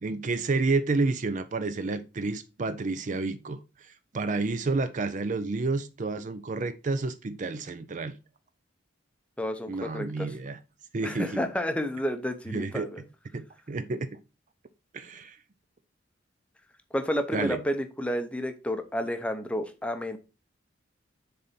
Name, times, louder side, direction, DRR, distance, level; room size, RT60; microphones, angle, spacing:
voice 1, 0.0-3.6 4.1-8.1 9.7-10.6 10.9-11.4 12.5-12.9 13.3-14.1 14.9-15.4 17.3-17.6, right 3 dB, 40° right, 0.5 m, -30 dB
voice 2, 9.4-10.3 11.0-13.0 16.9-20.2, equal, 5° left, 0.7 m, -31 dB
6.7 x 4.0 x 4.2 m
head